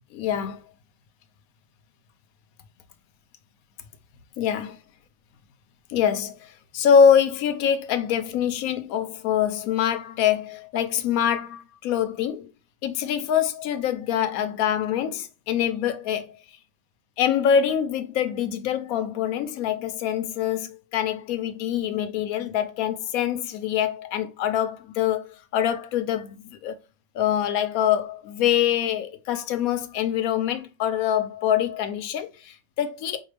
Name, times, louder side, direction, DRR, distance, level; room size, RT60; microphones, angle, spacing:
voice 1, 0.2-0.6 4.4-4.8 5.9-12.5 12.8-16.4 17.2-26.7 27.1-33.2, left 8 dB, 75° left, 1.0 m, -24 dB
4.5 x 2.4 x 3.2 m
omnidirectional pair, 1.5 m